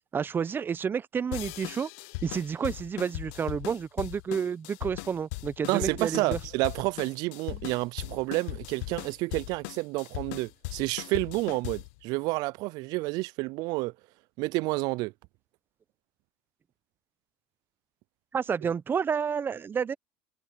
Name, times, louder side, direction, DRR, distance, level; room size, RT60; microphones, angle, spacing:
voice 1, 0.1-1.9 2.2-6.4 7.5-7.6 18.3-19.9, right 7 dB, 30° right, 0.7 m, -30 dB
sound 1, 1.3-12.0, left 24 dB, 80° left, 0.5 m, -39 dB
voice 2, 5.7-13.9 14.4-15.1, right 23 dB, 65° right, 0.3 m, -30 dB
supercardioid pair, 95°, 7 cm